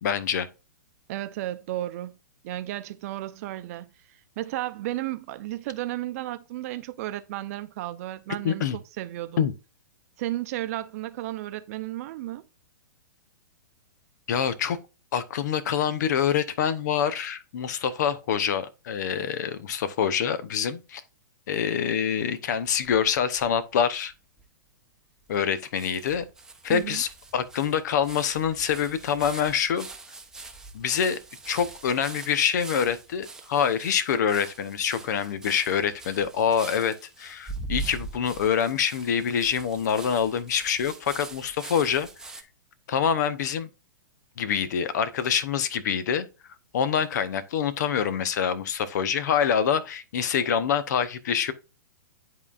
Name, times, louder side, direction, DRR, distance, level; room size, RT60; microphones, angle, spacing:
voice 1, 0.0-0.5 8.4-8.8 9.4-9.5 14.3-14.8 15.1-21.0 21.5-24.1 25.3-26.3 26.6-29.9 30.7-31.2 31.5-42.1 42.9-43.7 44.4-46.3 46.7-51.5, left 8 dB, 60° left, 0.8 m, -26 dB
voice 2, 1.1-2.2 2.4-3.9 4.4-9.5 10.2-12.5 26.7-27.0, right 15 dB, 50° right, 0.6 m, -33 dB
sound 1, 22.6-23.6 24.1-24.2 24.4-24.5 25.3-25.4 25.7-42.4, right 3 dB, 5° right, 0.8 m, -42 dB
11.0 x 3.8 x 2.4 m
hypercardioid pair, 115°, 11 cm